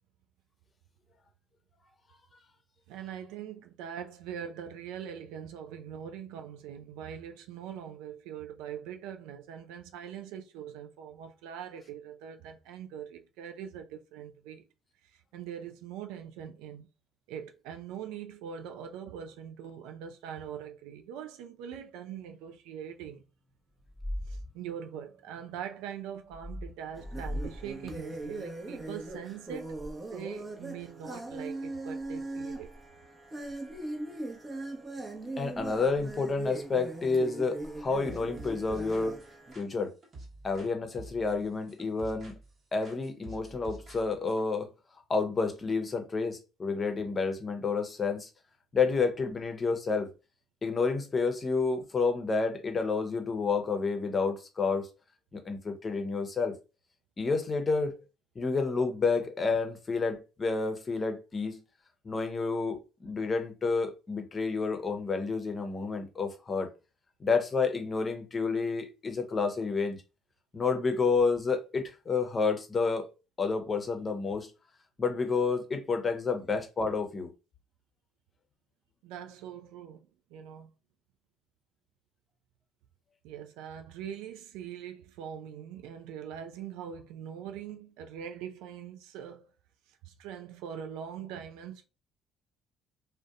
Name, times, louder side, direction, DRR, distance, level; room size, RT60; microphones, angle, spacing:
voice 1, 2.9-14.7 15.0-16.9 17.3-23.2 24.3-29.8 30.1-32.7 79.0-80.7 83.2-89.5 89.9-91.9, right 9 dB, 75° right, 0.3 m, -42 dB
sound 1, 23.9-24.5 26.3-27.5 27.8-28.0, left 1 dB, 5° left, 0.3 m, -37 dB
sound 2, 27.0-39.5, right 2 dB, 30° right, 0.7 m, -40 dB
voice 2, 35.4-39.2 39.6-39.9 40.4-42.4 42.7-44.7 45.1-48.3 48.7-50.1 50.6-54.9 55.3-56.5 57.2-58.0 58.4-61.6 62.0-66.7 67.2-70.0 70.5-73.1 73.4-74.5 75.0-77.3, left 4 dB, 35° left, 0.7 m, -29 dB
sound 3, 38.1-40.7 41.0-42.6 42.8-44.4, right 2 dB, 50° right, 1.0 m, -48 dB
2.5 x 2.1 x 2.3 m
hypercardioid pair, 50°, 0 cm